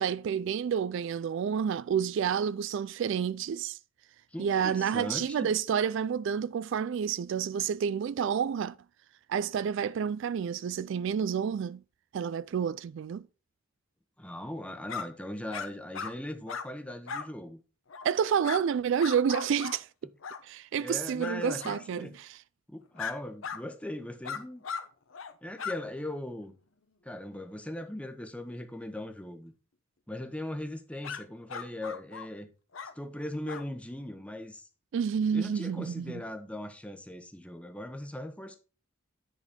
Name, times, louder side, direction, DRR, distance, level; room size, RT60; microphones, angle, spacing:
voice 1, 0.0-3.8 4.4-8.7 9.3-11.8 12.1-13.2 18.0-19.9 20.4-22.3 34.9-36.2, right 7 dB, 60° right, 0.3 m, -29 dB
voice 2, 4.3-5.5 14.2-17.6 20.8-22.1 22.7-24.6 25.4-26.5 27.0-29.5 30.1-32.5 32.9-34.6 35.3-38.6, left 1 dB, 5° left, 0.9 m, -39 dB
sound 1, 14.9-15.1 15.5-15.7 15.9-16.1 16.5-16.7 17.1-17.3 17.9-18.1 18.4-18.6 19.0-19.8 20.2-20.4 21.2-21.3 21.6-21.8 23.0-23.1 23.4-23.6 24.2-24.9 25.1-25.3 25.6-25.8 31.0-31.2 31.5-32.3 32.7-32.9 33.5-33.6, left 6 dB, 75° left, 0.8 m, -37 dB
9.9 x 4.1 x 5.2 m
head